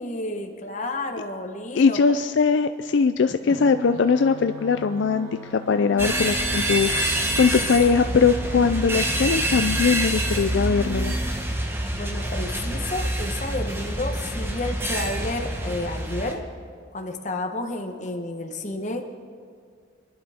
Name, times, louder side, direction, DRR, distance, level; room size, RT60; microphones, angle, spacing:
voice 1, 0.0-2.1 11.9-16.4 16.9-19.0, left 2 dB, 40° left, 4 dB, 1.2 m, -31 dB
voice 2, 1.8-11.2, left 5 dB, 75° left, 9 dB, 0.4 m, -21 dB
sound 1, 3.3-11.3, equal, 35° right, 3.0 m, -38 dB
sound 2, 6.0-16.3, right 1 dB, 10° right, 1.1 m, -27 dB
25.0 x 11.0 x 3.6 m, 2.1 s
head